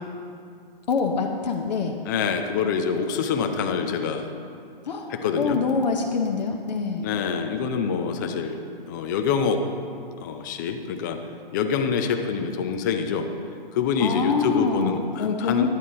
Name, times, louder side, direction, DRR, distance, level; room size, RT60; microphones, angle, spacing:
voice 1, 0.9-2.0 4.8-7.1 14.0-15.7, left 5 dB, 45° left, 3 dB, 0.8 m, -25 dB
voice 2, 2.1-4.3 5.1-5.6 7.0-8.6 8.9-9.6 10.2-11.2 11.5-13.3 13.7-15.7, left 6 dB, 20° left, 6 dB, 0.4 m, -26 dB
10.5 x 9.3 x 3.7 m, 2.3 s
figure-of-eight pair, 125°, 29 cm